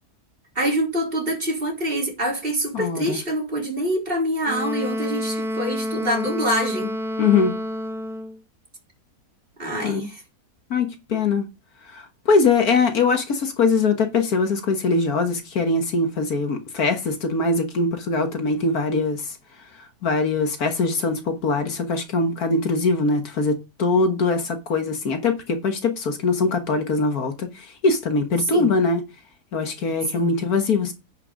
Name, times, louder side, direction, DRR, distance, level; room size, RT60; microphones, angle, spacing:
voice 1, 0.6-6.9 9.6-10.2 28.5-28.7 30.1-30.3, equal, 35° right, 3.7 m, -25 dB
voice 2, 2.7-3.2 7.2-7.5 9.8-10.0 10.7-11.5 11.9-19.4 20.0-29.0 29.5-30.9, left 4 dB, 65° left, 1.8 m, -22 dB
Wind instrument woodwind instrument, 4.4-8.4, equal, ahead, 0.6 m, -28 dB
10.0 x 5.6 x 5.1 m
omnidirectional pair, 1.7 m